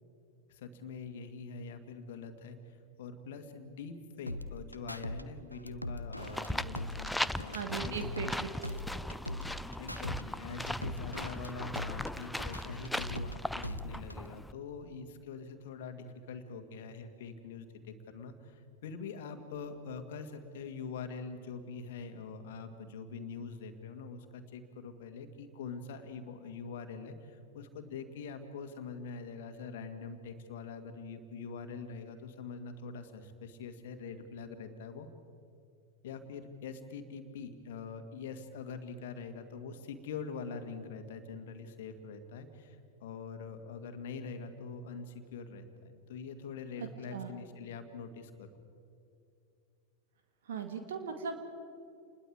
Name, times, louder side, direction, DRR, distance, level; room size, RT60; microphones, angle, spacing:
voice 1, 0.5-8.3 9.8-35.1 36.0-48.5, left 5 dB, 55° left, 7 dB, 1.9 m, -44 dB
sound 1, 4.3-5.2 5.5-8.4 8.6-10.2 10.5-13.3 13.6-14.3, left 1 dB, 90° left, 0.6 m, -41 dB
sound 2, 6.2-14.5, left 1 dB, 5° left, 0.5 m, -38 dB
voice 2, 7.5-8.5 46.8-47.3 50.5-51.4, right 6 dB, 60° right, 6 dB, 1.8 m, -38 dB
28.5 x 21.0 x 4.8 m, 2.6 s
figure-of-eight pair, 90°, 0 cm